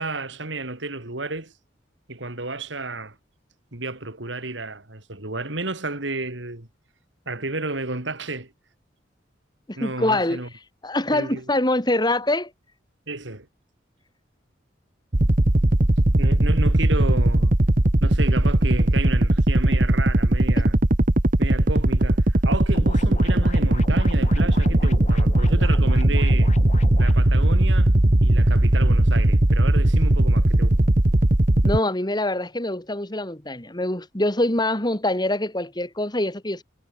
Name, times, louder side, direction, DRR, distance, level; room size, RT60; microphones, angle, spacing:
voice 1, 0.0-1.5 2.1-3.2 3.7-6.7 7.3-8.5 9.8-10.5 11.1-11.5 13.1-13.5 16.2-17.5 18.0-20.8 21.4-26.5 27.0-27.9 28.2-30.8, right 2 dB, 75° right, 3.6 m, -32 dB
voice 2, 9.7-10.4 10.8-12.5 20.6-20.7 31.6-36.6, left 1 dB, 25° left, 2.4 m, -24 dB
sound 1, 15.1-31.8, right 1 dB, 45° right, 1.3 m, -18 dB
sound 2, 22.7-27.1, left 2 dB, 40° left, 3.1 m, -38 dB
head